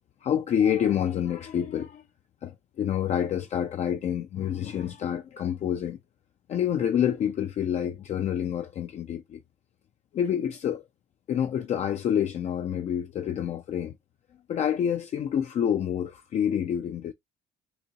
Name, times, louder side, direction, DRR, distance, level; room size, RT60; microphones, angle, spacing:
voice 1, 0.2-2.0 2.4-6.0 6.5-9.4 10.1-10.8 11.3-13.9 14.5-17.1, left 9 dB, 40° left, 0.4 m, -27 dB
3.8 x 2.7 x 2.8 m
cardioid pair, 110°, 17 cm